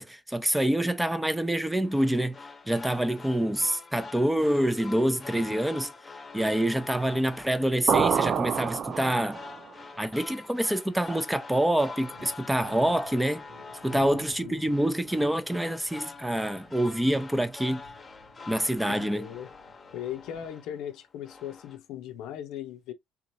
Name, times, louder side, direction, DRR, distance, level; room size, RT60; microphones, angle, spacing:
voice 1, 0.0-2.4 2.7-5.9 6.3-9.4 10.0-13.4 13.8-17.8 18.5-19.3, right 1 dB, 5° right, 0.7 m, -26 dB
sound 1, 1.8-20.9 21.2-21.8, left 4 dB, 30° left, 1.0 m, -46 dB
sound 2, 7.9-9.6, right 7 dB, 50° right, 0.4 m, -26 dB
sound 3, 11.8-20.5, right 3 dB, 85° right, 1.7 m, -54 dB
voice 2, 18.9-19.5 19.9-22.9, left 10 dB, 70° left, 0.6 m, -38 dB
3.8 x 3.0 x 2.6 m
hypercardioid pair, 60°, 0 cm